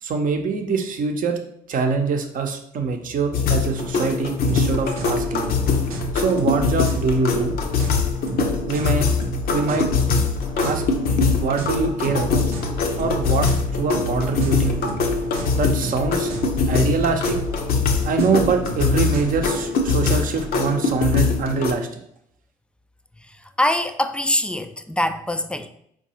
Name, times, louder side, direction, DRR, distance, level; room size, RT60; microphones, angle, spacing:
voice 1, 0.0-1.4 1.7-5.5 6.1-7.6 8.6-9.1 9.5-9.9 10.6-10.9 11.4-12.4 13.0-14.9 15.5-16.3 16.7-17.4 18.0-22.0, right 4 dB, 45° right, 0.7 m, -24 dB
sound 1, 3.3-21.7, left 4 dB, 55° left, 0.6 m, -23 dB
sound 2, 4.5-19.5, right 1 dB, 85° right, 0.5 m, -31 dB
voice 2, 23.6-25.7, left 1 dB, 5° left, 0.3 m, -23 dB
4.5 x 2.3 x 2.8 m
hypercardioid pair, 50°, 18 cm